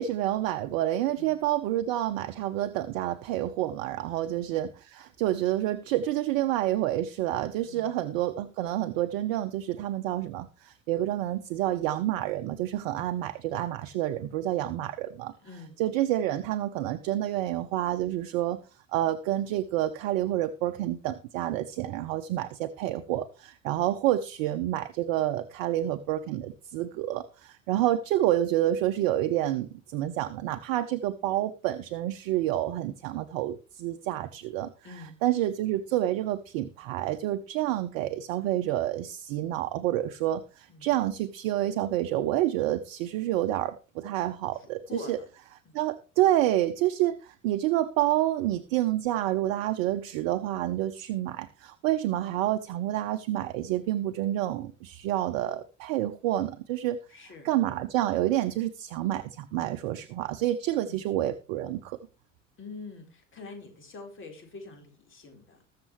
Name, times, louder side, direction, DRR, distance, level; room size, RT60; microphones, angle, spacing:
voice 1, 0.0-15.3 15.8-18.6 18.9-34.7 35.2-45.2 45.7-57.0 57.4-62.0, right 13 dB, 50° right, 9 dB, 0.9 m, -28 dB
voice 2, 7.6-8.0 12.9-13.0 14.6-14.7 15.4-15.8 34.8-35.2 40.7-41.0 44.5-45.3 45.6-45.8 57.1-57.5 60.8-61.1 62.6-65.6, left 3 dB, 30° left, 4 dB, 4.3 m, -45 dB
20.5 x 6.9 x 3.2 m, 0.32 s
figure-of-eight pair, 70°, 38 cm